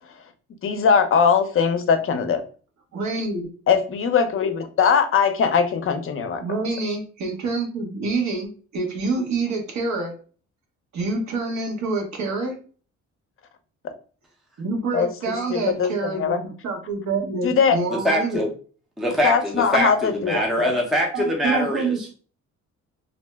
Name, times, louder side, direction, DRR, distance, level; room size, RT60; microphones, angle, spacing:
voice 1, 0.6-2.4 3.7-6.4 14.9-16.4 17.4-17.8 19.2-20.7, left 6 dB, 45° left, 8 dB, 0.6 m, -21 dB
voice 2, 2.9-3.5 6.4-10.1 10.9-12.6 14.6-18.4 21.1-22.0, right 3 dB, 65° right, 2 dB, 1.1 m, -27 dB
voice 3, 18.0-18.5 19.0-22.1, equal, ahead, 0 dB, 0.6 m, -23 dB
2.7 x 2.0 x 3.3 m, 0.39 s
cardioid pair, 90°, 30 cm